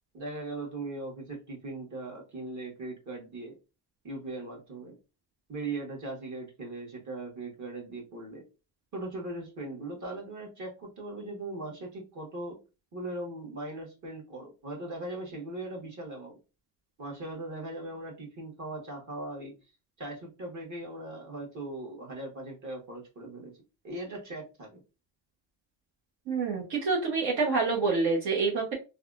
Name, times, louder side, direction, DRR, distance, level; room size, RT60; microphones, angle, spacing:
voice 1, 0.1-3.5 4.0-4.9 5.5-8.4 8.9-12.6 12.9-16.4 17.0-19.6 20.0-23.5 23.8-24.8, right 2 dB, 45° right, -1 dB, 1.5 m, -39 dB
voice 2, 26.3-28.8, right 4 dB, 65° right, -2 dB, 1.1 m, -27 dB
3.3 x 2.3 x 2.5 m, 0.30 s
cardioid pair, 95°, 42 cm